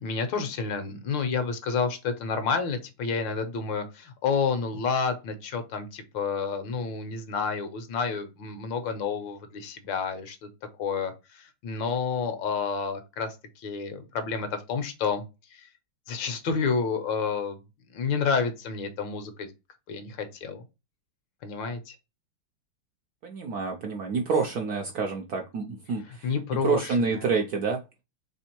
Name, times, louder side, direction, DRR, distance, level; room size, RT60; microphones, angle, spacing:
voice 1, 0.0-10.5 10.8-15.2 15.5-15.7 16.1-17.6 17.9-19.5 19.9-20.6 21.4-21.9 26.2-27.3, left 5 dB, 70° left, 8 dB, 1.5 m, -30 dB
voice 2, 23.2-26.3 26.6-27.8, right 4 dB, 70° right, 3 dB, 0.9 m, -28 dB
3.5 x 3.3 x 4.4 m, 0.26 s
omnidirectional pair, 2.2 m